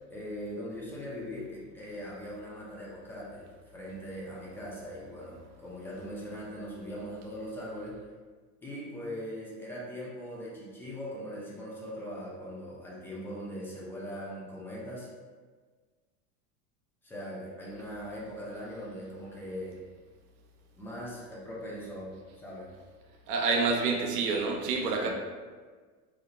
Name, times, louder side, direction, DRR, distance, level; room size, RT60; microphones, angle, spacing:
voice 1, 0.1-3.5 3.7-7.9 8.6-15.1 17.0-19.8 20.8-22.7 24.7-25.1, equal, 5° left, -6 dB, 0.6 m, -40 dB
voice 2, 23.3-25.1, right 4 dB, 75° right, 1 dB, 0.6 m, -28 dB
2.4 x 2.1 x 2.9 m, 1.5 s
hypercardioid pair, 95°, 45 cm